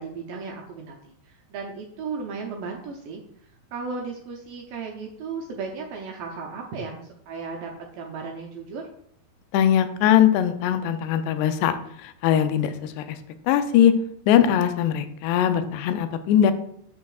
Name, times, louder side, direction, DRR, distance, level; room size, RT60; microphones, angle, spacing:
voice 1, 0.0-3.2 3.7-8.8, right 4 dB, 75° right, 0 dB, 2.1 m, -35 dB
voice 2, 9.5-11.8 12.0-13.2 13.5-13.9 14.3-16.5, left 10 dB, 90° left, 9 dB, 2.7 m, -20 dB
8.5 x 6.8 x 2.4 m, 0.70 s
omnidirectional pair, 4.7 m